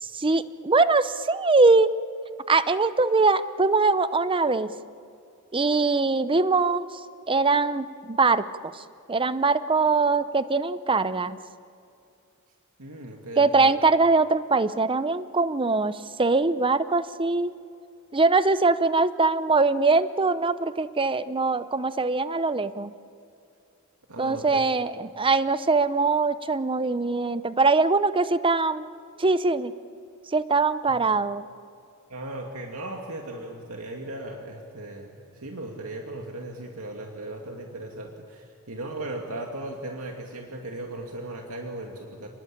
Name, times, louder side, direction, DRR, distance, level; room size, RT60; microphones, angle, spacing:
voice 1, 0.0-1.9 2.5-4.7 5.5-6.9 7.3-8.8 9.1-11.4 13.4-17.5 18.1-22.9 24.2-28.9 29.2-29.7 30.3-31.5, right 3 dB, 25° right, 13 dB, 0.7 m, -22 dB
voice 2, 12.8-13.7 24.1-24.6 30.9-31.0 32.1-42.3, right 1 dB, 85° right, 1 dB, 2.4 m, -37 dB
30.0 x 20.5 x 8.5 m, 2.5 s
head